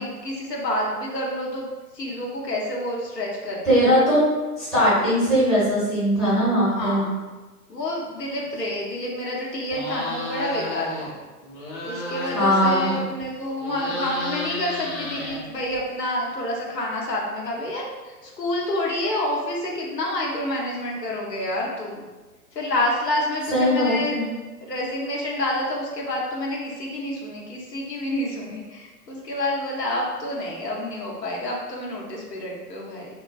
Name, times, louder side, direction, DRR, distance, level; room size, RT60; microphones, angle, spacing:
voice 1, 0.0-1.7 1.9-4.0 6.6-7.1 7.7-11.1 11.8-22.0 22.5-24.2 24.6-33.1, left 1 dB, 85° left, -3 dB, 0.9 m, -28 dB
voice 2, 3.6-4.3 4.6-7.0 12.3-12.9 23.5-24.2, equal, ahead, -14 dB, 0.5 m, -20 dB
sound 1, 9.7-11.1 11.4-13.2 13.5-15.8, left 2 dB, 35° left, 0.8 m, -32 dB
3.6 x 2.2 x 2.4 m, 1.2 s
figure-of-eight pair, 115°, 47 cm